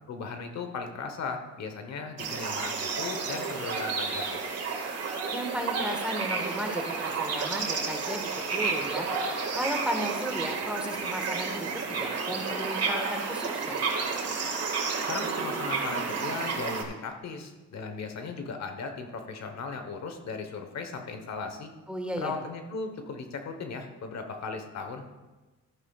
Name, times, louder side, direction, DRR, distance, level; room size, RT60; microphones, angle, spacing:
voice 1, 0.1-4.4 15.1-21.7 22.2-25.2, left 4 dB, 60° left, 6 dB, 1.2 m, -37 dB
sound 1, 2.2-16.8, right 4 dB, 55° right, 1.9 m, -31 dB
voice 2, 5.3-13.8 21.9-22.3, equal, 5° right, 3 dB, 1.5 m, -34 dB
13.5 x 9.6 x 2.4 m, 1.2 s
cardioid pair, 90°, 30 cm